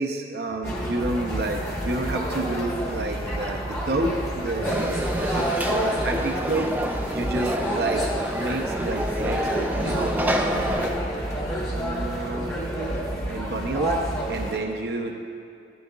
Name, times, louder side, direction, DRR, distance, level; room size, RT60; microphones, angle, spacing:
voice 1, 0.0-6.7 7.1-8.0 8.3-10.9 11.7-12.5 13.3-15.2, right 2 dB, 65° right, 2 dB, 0.8 m, -29 dB
sound 1, 0.6-14.6, equal, 20° left, 1.3 m, -29 dB
Conversation / Crowd, 4.7-10.9, right 1 dB, 10° right, 0.4 m, -28 dB
12.5 x 10.5 x 2.4 m, 2.5 s
head